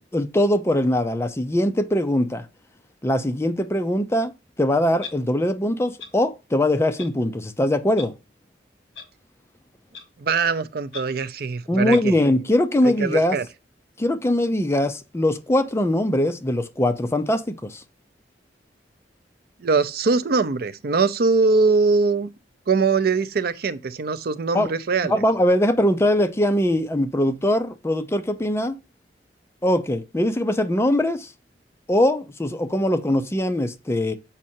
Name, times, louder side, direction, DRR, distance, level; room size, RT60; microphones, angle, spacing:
voice 1, 0.1-2.5 3.0-4.3 4.6-8.1 11.7-13.4 14.0-17.8 24.5-24.7 25.1-28.8 29.6-31.3 31.9-34.2, left 1 dB, 15° left, 0.5 m, -21 dB
Clock, 5.0-5.1 6.0-6.1 7.0-7.1 7.9-8.1 8.9-9.1 9.9-10.0 10.9-11.0 11.9-12.0, left 6 dB, 65° left, 1.3 m, -37 dB
voice 2, 10.2-12.1 12.8-13.5 19.6-22.3 22.7-25.1, right 4 dB, 55° right, 0.5 m, -22 dB
7.3 x 5.4 x 2.7 m
head